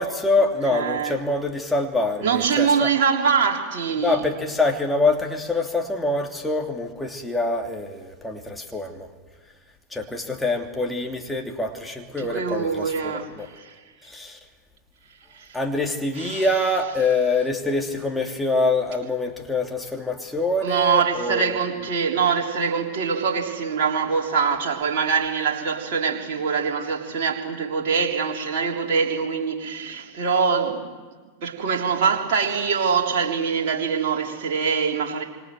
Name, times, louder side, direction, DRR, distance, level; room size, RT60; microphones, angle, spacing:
voice 1, 0.0-2.9 4.0-9.1 9.9-13.5 14.0-14.4 15.5-21.6, left 2 dB, 5° left, 3.0 m, -25 dB
voice 2, 0.7-1.2 2.2-4.2 12.2-13.7 15.3-15.6 16.2-16.5 20.6-30.8 31.4-35.2, right 6 dB, 50° right, 3.6 m, -24 dB
27.5 x 26.0 x 7.8 m
figure-of-eight pair, 90°, 0 cm